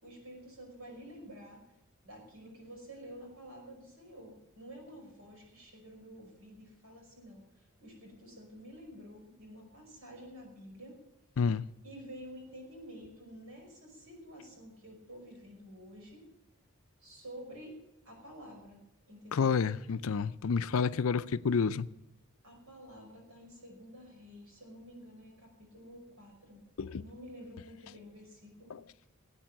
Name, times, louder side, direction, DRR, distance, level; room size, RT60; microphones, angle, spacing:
voice 1, 0.0-1.6 2.0-11.0 11.8-16.3 17.0-17.8 18.0-19.6 22.4-26.6 27.0-28.8, equal, 75° right, 5.5 m, -50 dB
voice 2, 19.3-21.9 26.8-27.0, left 5 dB, 75° left, 0.5 m, -29 dB
18.0 x 8.9 x 7.5 m
head